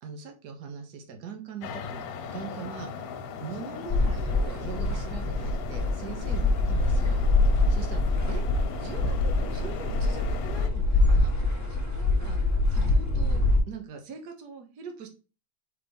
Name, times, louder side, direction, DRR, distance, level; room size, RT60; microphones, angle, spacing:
voice 1, 0.0-2.0 2.3-2.9 3.4-7.2 7.7-8.0 8.3-8.4 8.8-11.3 11.7-12.4 12.7-13.4 13.7-15.1, right 6 dB, 65° right, 4 dB, 1.0 m, -41 dB
sound 1, 1.6-10.7, left 5 dB, 75° left, 1.9 m, -39 dB
sound 2, 3.9-13.6, left 2 dB, 25° left, 0.3 m, -25 dB
5.7 x 3.5 x 5.3 m, 0.33 s
omnidirectional pair, 3.4 m